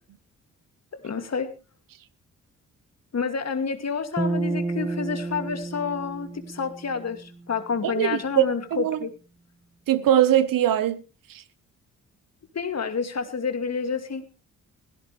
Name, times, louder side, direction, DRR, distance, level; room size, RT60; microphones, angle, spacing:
voice 1, 1.0-1.5 3.1-9.1 12.5-14.2, left 5 dB, 45° left, 2.4 m, -29 dB
sound 1, 4.2-7.5, right 2 dB, 10° right, 1.7 m, -31 dB
voice 2, 7.8-8.4 8.7-9.0 9.9-11.0 11.3-11.4, right 11 dB, 60° right, 1.2 m, -21 dB
16.5 x 15.0 x 3.3 m
hypercardioid pair, 45°, 37 cm